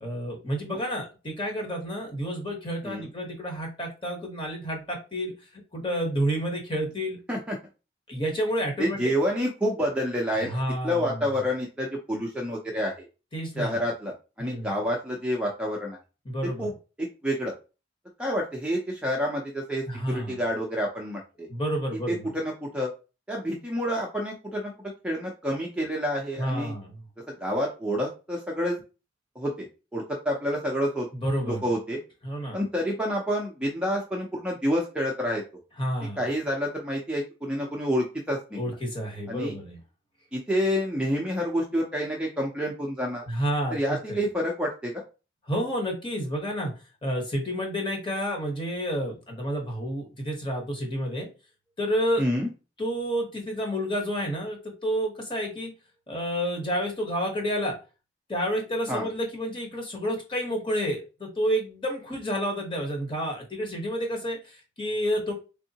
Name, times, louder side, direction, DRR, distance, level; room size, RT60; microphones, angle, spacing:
voice 1, 0.0-7.2 8.1-9.1 10.3-11.4 13.3-13.8 14.4-14.8 16.2-16.7 19.9-20.5 21.5-22.3 26.4-27.0 31.1-31.7 32.2-32.6 35.8-36.2 38.5-39.8 43.3-44.2 45.5-46.7 47.0-51.3 51.8-52.2 52.8-55.7 56.1-57.7 58.3-65.3, equal, 25° left, 1 dB, 1.1 m, -30 dB
voice 2, 8.8-13.1 13.6-16.0 16.6-16.7 17.0-17.5 18.2-21.5 22.1-22.9 23.3-24.7 25.0-26.7 27.3-28.8 29.4-31.1 31.4-32.0 32.5-35.4 36.2-38.8 39.3-39.5 40.3-43.2 43.7-45.0 52.2-52.5 58.9-59.1, equal, 5° right, -1 dB, 0.5 m, -28 dB
3.7 x 3.5 x 2.8 m, 0.32 s
head